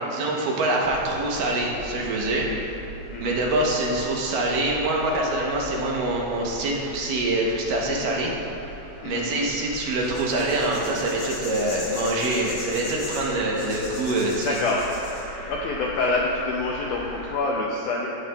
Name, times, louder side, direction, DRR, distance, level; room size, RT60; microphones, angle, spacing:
voice 1, 0.1-2.8 3.2-8.3 9.0-14.6, right 2 dB, 75° right, -2 dB, 2.4 m, -25 dB
sound 1, 0.8-17.4, equal, 45° right, 2.3 m, -41 dB
sound 2, 10.0-15.2, left 2 dB, 55° left, 2.0 m, -38 dB
voice 2, 14.4-14.8 15.5-18.1, left 3 dB, 80° left, -2 dB, 1.8 m, -26 dB
14.0 x 7.1 x 2.2 m, 2.9 s
omnidirectional pair, 4.2 m